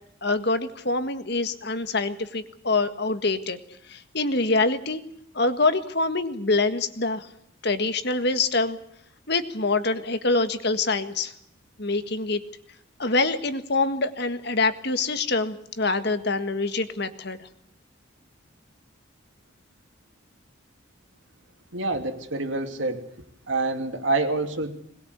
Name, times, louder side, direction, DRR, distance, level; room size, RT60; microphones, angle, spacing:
voice 1, 0.2-3.6 3.9-5.0 5.3-7.3 7.6-8.8 9.3-11.3 11.8-12.4 13.0-17.5, left 3 dB, 55° left, 9 dB, 1.7 m, -25 dB
voice 2, 21.7-23.0 23.5-24.8, right 2 dB, 70° right, 6 dB, 2.7 m, -27 dB
22.0 x 20.5 x 8.2 m, 0.71 s
head